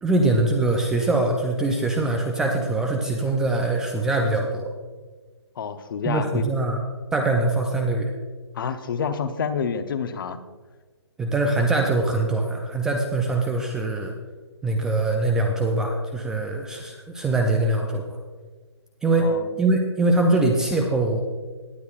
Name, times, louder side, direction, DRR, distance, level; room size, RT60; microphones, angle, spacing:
voice 1, 0.0-4.7 6.1-6.8 7.1-8.1 11.2-14.1 14.6-18.0 19.0-19.3 19.6-21.2, right 2 dB, 5° right, 2 dB, 0.3 m, -23 dB
voice 2, 5.6-6.5 8.5-10.4 19.2-19.5, left 6 dB, 50° left, 10 dB, 0.8 m, -28 dB
18.5 x 8.2 x 2.4 m, 1.4 s
hypercardioid pair, 150°, 15 cm